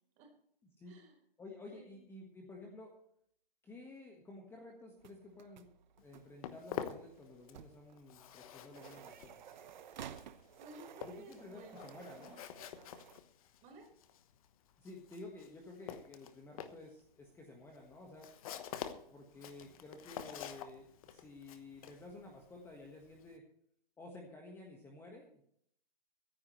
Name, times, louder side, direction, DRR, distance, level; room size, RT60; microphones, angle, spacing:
voice 1, 0.9-1.2 1.7-2.0 10.6-13.0 13.6-13.9 19.3-20.2, right 3 dB, 25° right, 2 dB, 4.5 m, -57 dB
voice 2, 1.4-2.9 3.6-5.7 6.0-9.4 11.0-12.4 14.8-18.3 19.1-23.4 24.0-25.4, left 2 dB, 10° left, 1 dB, 1.5 m, -52 dB
sound 1, 5.0-13.2, right 9 dB, 50° right, 1.0 m, -54 dB
Walk footsteps, 6.0-7.7 8.0-23.4, left 9 dB, 40° left, 1.2 m, -48 dB
24.5 x 9.9 x 3.2 m, 0.68 s
hypercardioid pair, 140°, 29 cm